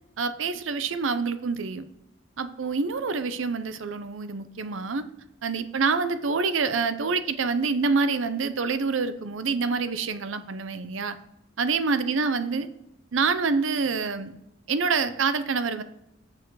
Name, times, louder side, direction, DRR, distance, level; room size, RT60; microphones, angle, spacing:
voice 1, 0.2-1.9 2.4-5.0 5.4-11.2 11.6-12.7 13.1-14.3 14.7-15.8, right 4 dB, 70° right, 12 dB, 0.6 m, -26 dB
7.0 x 6.9 x 4.7 m, 0.84 s
head